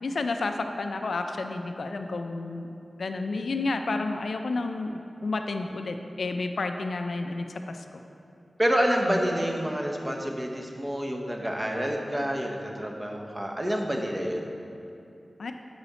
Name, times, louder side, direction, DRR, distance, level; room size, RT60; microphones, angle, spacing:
voice 1, 0.0-2.7 3.0-8.0 9.0-9.5 15.4-15.5, left 3 dB, 80° left, 6 dB, 0.4 m, -31 dB
voice 2, 8.6-14.5, equal, 25° right, 1 dB, 1.0 m, -28 dB
7.8 x 5.6 x 4.1 m, 2.7 s
cardioid pair, 45°, 0 cm